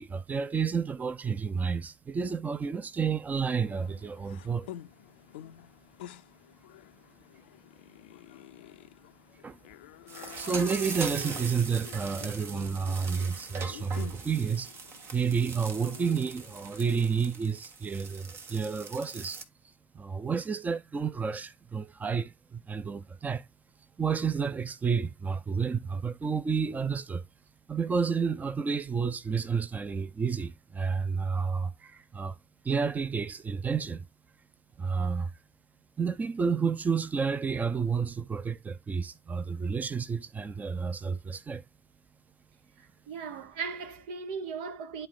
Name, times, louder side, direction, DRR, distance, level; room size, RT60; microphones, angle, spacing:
voice 1, 0.0-4.7 9.4-9.6 10.4-14.7 15.1-19.4 19.9-23.5 24.0-27.2 27.7-32.4 32.6-34.1 34.8-35.3 36.0-41.6, right 5 dB, 30° right, 0.7 m, -30 dB
sound 1, 3.6-17.3, left 12 dB, 80° left, 0.4 m, -49 dB
sound 2, 10.1-19.4, right 4 dB, 55° right, 1.4 m, -41 dB
voice 2, 42.8-45.1, right 5 dB, 75° right, 0.9 m, -38 dB
11.0 x 4.0 x 3.6 m
figure-of-eight pair, 50°, 5 cm